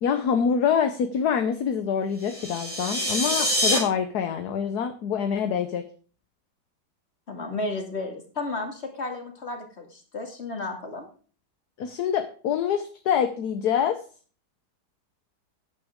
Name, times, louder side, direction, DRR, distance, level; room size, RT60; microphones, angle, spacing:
voice 1, 0.0-5.8 11.8-14.0, left 7 dB, 65° left, 9 dB, 1.4 m, -25 dB
sound 1, 2.2-3.8, equal, 5° right, 4.3 m, -25 dB
voice 2, 7.3-11.1, left 2 dB, 35° left, 3 dB, 2.7 m, -33 dB
12.5 x 9.7 x 3.7 m, 0.40 s
omnidirectional pair, 1.9 m